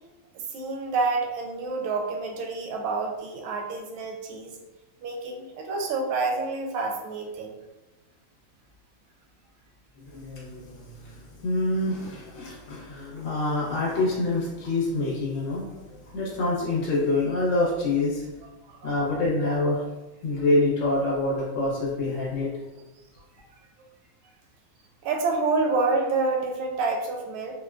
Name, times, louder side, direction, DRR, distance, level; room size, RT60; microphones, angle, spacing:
voice 1, 0.5-4.6 5.0-7.6 18.6-18.9 25.0-27.5, right 3 dB, 80° right, 2 dB, 1.4 m, -28 dB
voice 2, 10.0-18.3 18.8-19.8 20.2-22.5, left 2 dB, 65° left, -6 dB, 1.6 m, -26 dB
4.5 x 2.2 x 2.3 m, 1.1 s
omnidirectional pair, 2.2 m